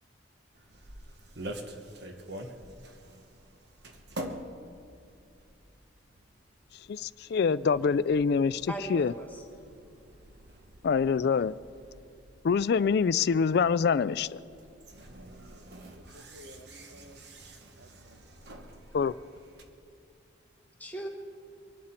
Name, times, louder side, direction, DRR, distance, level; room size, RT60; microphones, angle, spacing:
sound 1, 0.5-19.6, right 1 dB, 60° right, 1.1 m, -47 dB
voice 1, 6.9-9.1 10.8-11.6 12.4-14.4 18.9-19.1, left 5 dB, 55° left, 0.3 m, -25 dB
voice 2, 8.7-9.5 18.9-19.1 20.8-21.1, right 2 dB, 10° left, 1.4 m, -39 dB
voice 3, 15.2-17.2 17.8-18.2, equal, 85° right, 1.1 m, -54 dB
24.0 x 11.5 x 4.4 m
head